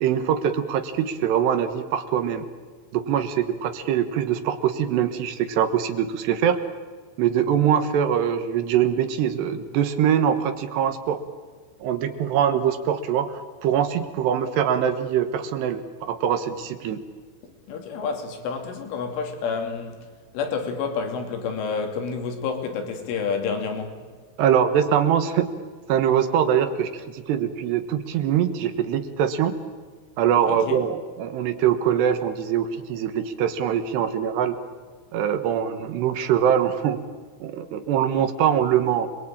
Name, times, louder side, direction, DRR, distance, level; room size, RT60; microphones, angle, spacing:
voice 1, 0.0-2.5 2.9-6.6 7.2-11.2 11.8-13.3 13.6-17.0 24.4-25.5 25.9-29.5 30.2-34.6 35.1-37.0 37.4-39.1, right 9 dB, 70° right, 3.0 m, -23 dB
voice 2, 17.4-20.1 20.3-24.0 30.5-30.8, left 5 dB, 70° left, 5.2 m, -29 dB
28.5 x 22.0 x 8.8 m
omnidirectional pair, 5.8 m